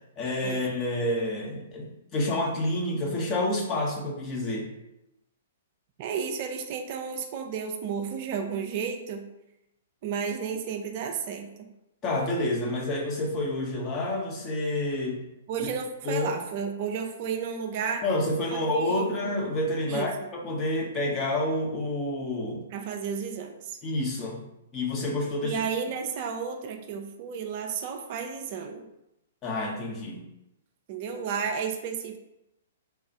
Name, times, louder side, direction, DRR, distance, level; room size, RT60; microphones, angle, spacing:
voice 1, 0.2-4.7 12.0-15.2 16.0-16.3 18.0-22.6 23.8-24.4 24.7-25.6 29.4-30.2, left 1 dB, 25° left, -1 dB, 0.8 m, -28 dB
voice 2, 6.0-9.3 10.0-11.7 15.5-18.0 18.7-19.1 19.9-20.1 22.7-23.8 25.4-28.9 30.9-32.2, right 6 dB, 45° right, 5 dB, 0.4 m, -32 dB
3.4 x 2.4 x 4.2 m, 0.87 s
figure-of-eight pair, 115°, 0 cm